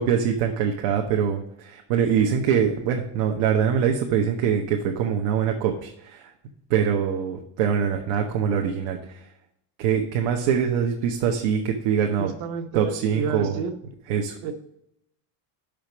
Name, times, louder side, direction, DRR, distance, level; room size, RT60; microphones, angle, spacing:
voice 1, 0.0-6.3 6.7-9.2 9.8-12.3 12.7-13.6 14.1-14.4, right 7 dB, 85° right, 2 dB, 1.0 m, -24 dB
voice 2, 12.2-13.7 14.4-14.5, right 5 dB, 60° right, 7 dB, 1.1 m, -30 dB
6.0 x 5.0 x 6.0 m, 0.78 s
cardioid pair, 170°, 47 cm